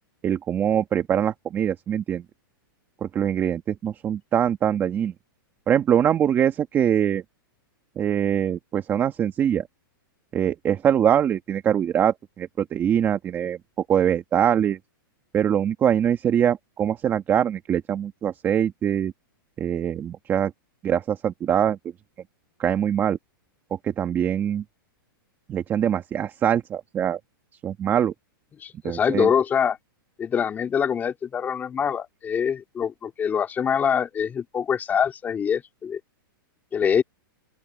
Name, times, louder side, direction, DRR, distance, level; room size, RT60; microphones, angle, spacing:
voice 1, 0.2-2.2 3.0-5.1 5.7-7.2 8.0-9.7 10.3-13.6 13.9-14.8 15.3-19.1 19.6-20.5 20.8-21.8 22.6-23.2 23.8-24.6 25.5-27.2 27.6-28.1 28.8-29.3, right 9 dB, 20° right, 1.7 m, -23 dB
voice 2, 28.6-29.8 30.2-36.0 36.7-37.0, left 7 dB, 15° left, 3.2 m, -24 dB
open air
hypercardioid pair, 155°, 12 cm